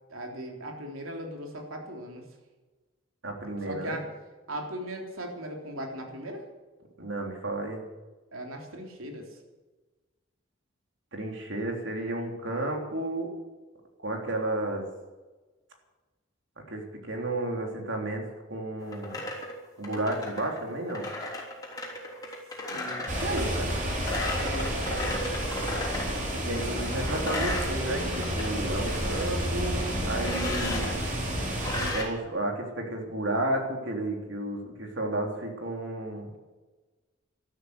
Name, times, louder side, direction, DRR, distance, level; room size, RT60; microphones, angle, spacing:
voice 1, 0.1-2.2 3.6-4.1 4.5-6.4 8.3-9.4 22.7-23.0 24.4-25.2, right 1 dB, 90° right, 1 dB, 3.4 m, -38 dB
voice 2, 3.2-4.0 7.0-7.8 11.1-13.3 14.0-14.9 16.6-18.2 18.5-19.2 19.8-21.1 23.0-23.7 26.5-31.0 31.9-36.3, right 1 dB, 65° right, 2 dB, 3.5 m, -32 dB
sound 1, 18.8-26.1 26.6-28.5 28.8-29.3 30.2-30.9 31.6-32.1, left 1 dB, 20° left, 3.5 m, -35 dB
sound 2, 23.1-31.9, equal, 40° right, 4.1 m, -30 dB
13.0 x 12.5 x 8.1 m, 1.2 s
head